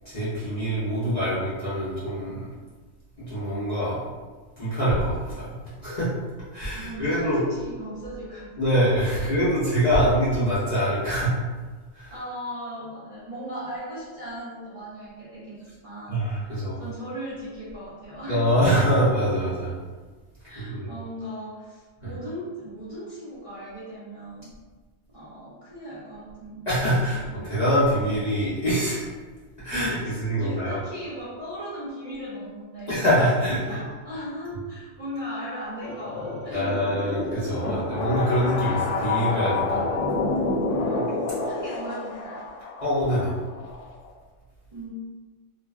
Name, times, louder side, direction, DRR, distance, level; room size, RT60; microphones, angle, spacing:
voice 1, 0.0-2.5 3.2-4.0 4.6-6.1 6.5-7.4 8.6-11.3 11.9-12.1 16.1-16.8 18.3-19.8 20.5-20.9 22.0-22.1 26.7-29.1 29.6-30.8 32.9-33.8 36.5-39.8 42.8-43.3, equal, 45° left, -12 dB, 0.6 m, -24 dB
voice 2, 6.7-8.5 9.1-9.4 9.9-10.1 12.1-18.7 20.5-24.5 25.1-27.4 29.7-33.1 33.5-36.9 40.8-42.4 44.7-44.9, equal, 40° right, -12 dB, 0.5 m, -38 dB
sound 1, 35.8-44.1, left 3 dB, 75° left, 0.9 m, -28 dB
2.4 x 2.2 x 2.3 m, 1.3 s
omnidirectional pair, 1.4 m